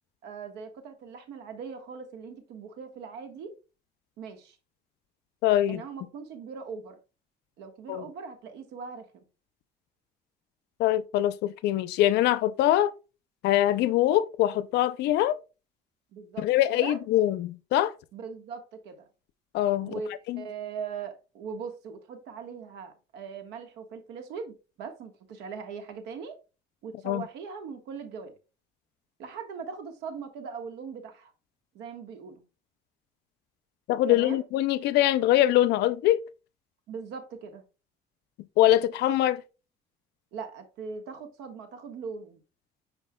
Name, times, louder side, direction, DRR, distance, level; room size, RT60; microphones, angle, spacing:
voice 1, 0.2-3.5 4.2-4.6 5.7-7.0 7.6-9.2 16.1-17.0 18.1-19.1 19.8-26.4 26.8-28.3 29.2-31.3 31.7-32.4 34.1-34.4 36.9-37.6 40.3-42.4, right 5 dB, 85° right, 1.4 m, -40 dB
voice 2, 5.4-5.8 7.9-8.1 10.8-12.9 13.4-15.4 16.4-17.9 19.5-19.9 20.3-20.4 27.1-27.2 33.9-36.2 38.6-39.4, left 13 dB, 80° left, 0.5 m, -23 dB
9.8 x 4.5 x 2.2 m
cardioid pair, 110°, 17 cm